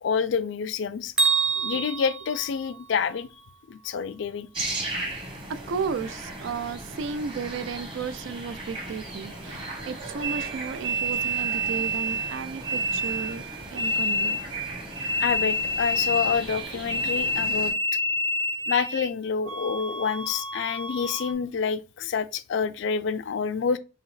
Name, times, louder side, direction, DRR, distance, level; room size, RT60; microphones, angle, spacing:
voice 1, 0.0-1.1 1.6-3.3 3.7-4.5 15.2-17.7 18.7-23.8, left 6 dB, 60° left, 0.3 m, -28 dB
Bell, 1.2-3.2, right 5 dB, 5° right, 0.6 m, -27 dB
sound 1, 4.5-17.7, right 1 dB, 25° right, 1.2 m, -38 dB
voice 2, 5.5-13.4 13.7-14.4, right 5 dB, 65° right, 0.4 m, -34 dB
sound 2, 10.2-19.1 19.4-21.3, equal, 85° right, 0.9 m, -29 dB
4.8 x 2.8 x 3.2 m
head